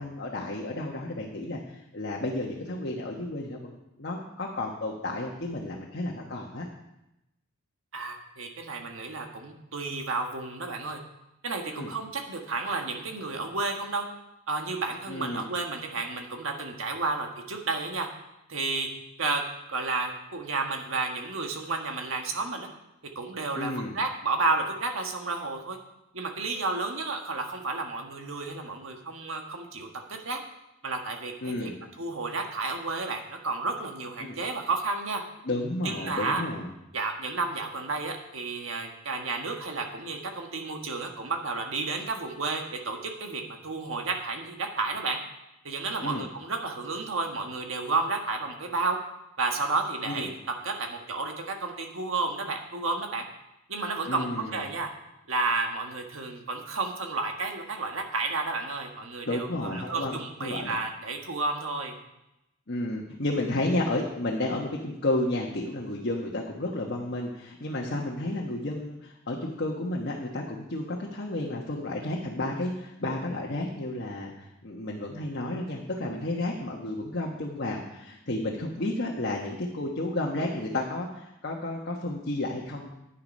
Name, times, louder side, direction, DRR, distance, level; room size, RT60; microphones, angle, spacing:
voice 1, 0.0-6.7 11.7-11.9 15.1-15.4 23.6-23.9 31.4-31.7 34.2-34.4 35.4-36.7 46.0-46.2 50.1-50.2 54.1-54.5 59.3-60.8 62.7-82.9, left 1 dB, 50° left, -1 dB, 1.3 m, -32 dB
voice 2, 7.9-11.0 11.4-14.1 14.5-18.1 18.5-18.9 19.2-19.4 19.7-22.7 23.1-25.8 26.1-30.4 30.8-31.7 32.0-35.2 35.8-36.4 36.9-45.2 45.6-49.0 49.4-50.3 50.6-53.2 53.7-54.9 55.3-61.9, right 3 dB, 65° right, 3 dB, 1.6 m, -31 dB
10.5 x 10.0 x 5.3 m, 0.90 s
head